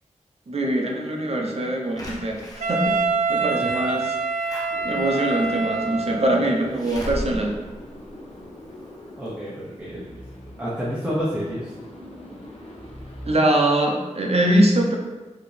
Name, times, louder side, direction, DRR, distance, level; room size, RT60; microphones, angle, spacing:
voice 1, 0.5-4.2 4.8-7.6 13.2-15.0, right 1 dB, 55° right, 0 dB, 0.7 m, -22 dB
Slam / Alarm, 2.0-8.8 9.3-9.4 9.6-9.7, equal, 30° left, 0.9 m, -38 dB
Wind instrument woodwind instrument, 2.6-6.4, right 4 dB, 90° right, 0.4 m, -25 dB
sound 1, 4.7-13.4, left 1 dB, 50° left, 0.9 m, -42 dB
voice 2, 9.2-10.2 10.6-11.7, equal, 10° right, -8 dB, 0.9 m, -29 dB
4.8 x 2.9 x 3.3 m, 1.2 s
wide cardioid pair, 100°, 13 cm